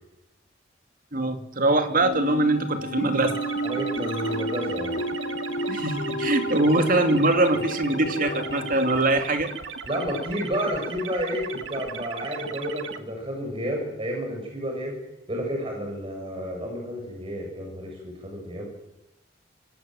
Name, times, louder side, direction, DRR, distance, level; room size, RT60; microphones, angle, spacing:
voice 1, 1.1-3.4 5.7-9.5, right 2 dB, 50° right, 7 dB, 2.8 m, -23 dB
sound 1, 2.0-9.0, equal, 90° left, 4.7 m, -31 dB
sound 2, 3.2-13.0, right 5 dB, 85° right, 2.1 m, -37 dB
voice 2, 3.6-5.0 9.8-15.0 15.3-18.7, equal, 30° right, 0 dB, 7.0 m, -31 dB
26.0 x 24.5 x 7.8 m, 0.91 s
head